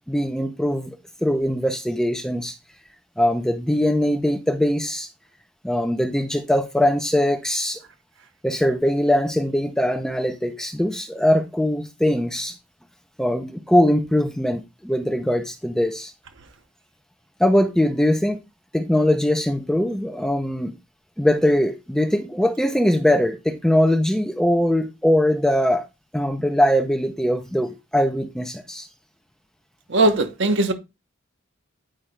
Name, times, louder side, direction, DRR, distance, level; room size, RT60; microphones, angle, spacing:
voice 1, 0.1-2.5 3.2-5.1 5.6-7.8 8.4-12.5 13.2-16.1 17.4-18.4 18.7-20.7 21.2-25.9 26.1-28.9, left 1 dB, 5° left, 0.6 m, -21 dB
voice 2, 29.9-30.7, right 2 dB, 60° right, 1.1 m, -19 dB
8.8 x 5.1 x 3.3 m
head